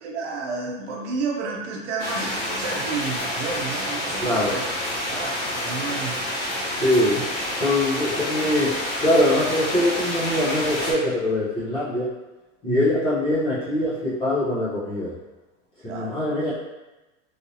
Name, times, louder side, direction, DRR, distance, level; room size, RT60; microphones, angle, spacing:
voice 1, 0.0-4.7 5.1-6.2 6.6-6.8 7.1-7.2 12.7-12.9 15.9-16.1, right 4 dB, 65° right, 0 dB, 0.8 m, -31 dB
sound 1, 2.0-10.9, left 1 dB, 30° left, 1.0 m, -28 dB
voice 2, 4.2-4.6 6.8-7.2 7.6-12.1 12.6-15.1 15.8-16.5, left 1 dB, 15° left, -10 dB, 0.6 m, -23 dB
3.2 x 2.6 x 2.7 m, 1.1 s
supercardioid pair, 170°, 38 cm